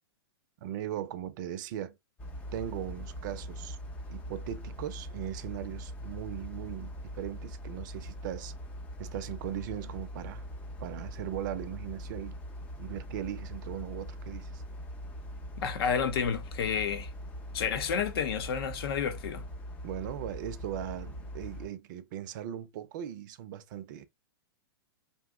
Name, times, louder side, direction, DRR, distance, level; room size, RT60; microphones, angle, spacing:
voice 1, 0.6-2.0 2.5-3.8 4.1-8.5 9.0-10.4 10.8-12.4 12.8-14.6 19.8-24.1, right 11 dB, 45° right, 0.5 m, -38 dB
sound 1, 2.2-21.7, equal, 10° left, 0.3 m, -42 dB
voice 2, 15.6-17.1 17.5-19.4, left 7 dB, 65° left, 0.7 m, -30 dB
2.6 x 2.0 x 3.6 m
hypercardioid pair, 150°, 14 cm